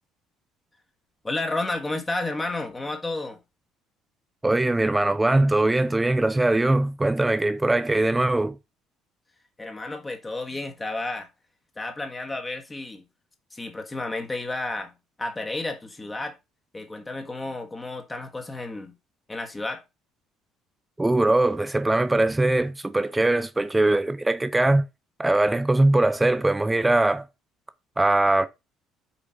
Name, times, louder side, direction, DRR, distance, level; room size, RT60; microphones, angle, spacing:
voice 1, 1.2-3.4 9.6-11.3 11.8-13.0 13.5-14.9 15.2-16.4 16.7-18.9 19.3-19.8, left 2 dB, 20° left, 1.6 m, -31 dB
voice 2, 4.4-8.6 21.0-24.8 25.2-27.3 28.0-28.5, right 2 dB, 10° right, 1.0 m, -21 dB
7.3 x 5.0 x 5.8 m
figure-of-eight pair, 50°, 0 cm